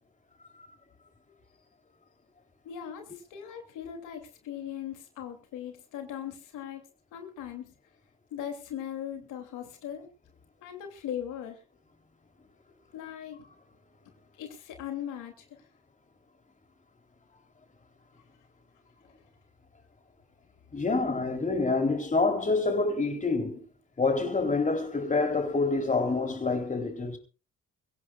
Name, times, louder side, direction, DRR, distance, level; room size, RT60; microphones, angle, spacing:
voice 1, 2.6-6.8 7.1-7.7 8.3-10.1 10.6-11.6 12.9-13.5 14.4-15.3, left 9 dB, 90° left, 3.1 m, -39 dB
voice 2, 20.7-23.6 24.0-27.2, left 3 dB, 25° left, 3.7 m, -27 dB
24.0 x 16.0 x 2.5 m
cardioid pair, 90°, 30 cm